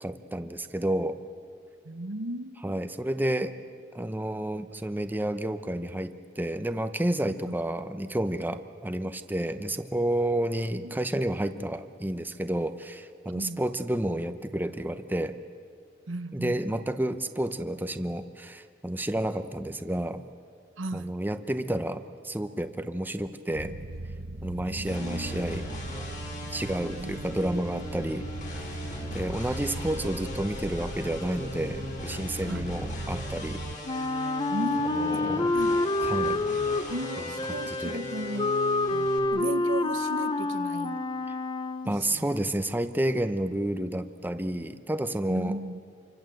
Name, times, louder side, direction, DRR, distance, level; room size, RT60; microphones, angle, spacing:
voice 1, 0.0-1.2 2.6-3.5 3.9-15.4 16.3-20.2 20.9-23.7 24.4-25.6 26.5-28.6 29.1-33.6 35.0-35.5 36.0-36.4 37.5-38.0 41.9-45.6, right 1 dB, 10° right, 0.8 m, -30 dB
voice 2, 1.8-2.7 7.5-7.6 10.8-10.9 13.3-13.6 16.1-16.8 20.8-21.1 24.6-25.5 27.0-27.1 29.3-29.6 32.5-32.7 34.5-35.9 36.9-38.6 38.9-41.0 41.8-42.4 45.3-45.8, right 2 dB, 90° right, 1.1 m, -36 dB
sound 1, 23.5-33.8, right 2 dB, 50° right, 0.8 m, -38 dB
sound 2, 24.9-39.2, left 1 dB, 40° left, 5.6 m, -39 dB
Wind instrument woodwind instrument, 33.8-42.0, left 2 dB, 25° left, 0.8 m, -28 dB
27.0 x 25.0 x 7.8 m
head